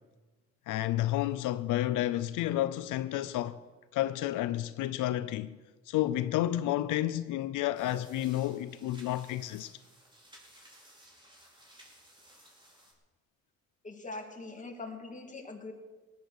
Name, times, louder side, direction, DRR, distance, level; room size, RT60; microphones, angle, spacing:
voice 1, 0.7-3.6 3.9-5.6 5.9-9.7, left 14 dB, 90° left, 0.6 m, -31 dB
sound 1, 7.7-12.9, right 1 dB, 15° right, 4.5 m, -57 dB
voice 2, 13.8-15.7, left 3 dB, 25° left, 2.7 m, -42 dB
18.0 x 10.0 x 6.7 m
cardioid pair, 90°, 30 cm